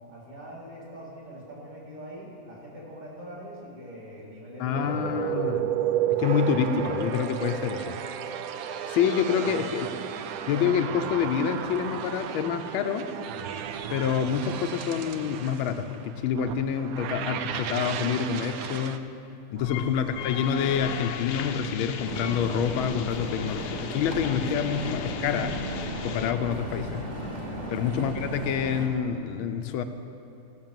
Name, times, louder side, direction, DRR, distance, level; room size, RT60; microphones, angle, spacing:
voice 1, 0.1-5.6 9.1-9.8 19.5-19.8 27.6-27.8, equal, 40° right, -5 dB, 3.9 m, -43 dB
voice 2, 4.6-5.6 6.1-8.0 8.9-9.9 10.5-13.1 13.9-19.1 19.5-25.6 26.0-27.1 27.7-29.8, left 7 dB, 85° left, 8 dB, 1.5 m, -27 dB
sound 1, 4.7-19.0, right 9 dB, 80° right, 0.8 m, -33 dB
sound 2, 19.6-26.3, left 7 dB, 65° left, 1.1 m, -36 dB
sound 3, 22.0-28.9, right 1 dB, 25° right, 1.6 m, -35 dB
16.5 x 6.6 x 7.3 m, 2.8 s
omnidirectional pair, 2.2 m